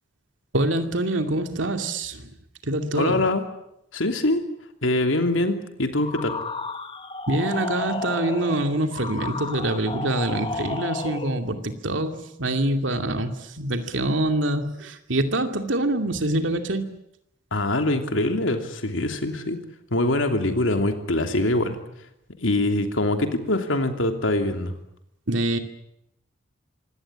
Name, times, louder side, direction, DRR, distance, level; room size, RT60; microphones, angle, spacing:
voice 1, 0.5-2.4 2.6-3.2 7.3-16.9 25.3-25.6, right 1 dB, 80° right, 7 dB, 2.5 m, -25 dB
voice 2, 2.9-3.4 3.9-4.4 4.8-6.3 17.5-19.6 19.9-21.8 22.4-24.7, left 2 dB, 90° left, 6 dB, 3.0 m, -23 dB
sound 1, 6.0-11.4, left 3 dB, 25° left, 1.7 m, -32 dB
25.5 x 17.5 x 10.0 m, 0.80 s
head